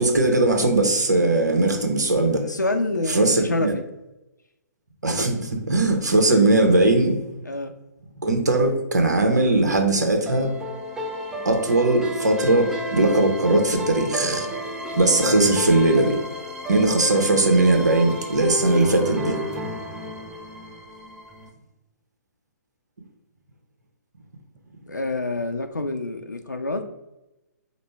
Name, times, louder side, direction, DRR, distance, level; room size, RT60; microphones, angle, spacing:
voice 1, 0.0-2.4 3.1-3.7 5.0-7.2 8.2-10.5 11.4-14.5 15.0-16.2 16.7-19.4, right 2 dB, 70° right, 3 dB, 0.9 m, -19 dB
voice 2, 2.4-3.8 7.4-7.7 15.2-15.4 24.9-26.8, left 2 dB, 90° left, 5 dB, 0.4 m, -27 dB
sound 1, 10.2-21.5, left 1 dB, 5° right, 0.4 m, -32 dB
5.0 x 2.1 x 3.4 m, 0.97 s
figure-of-eight pair, 125°, 9 cm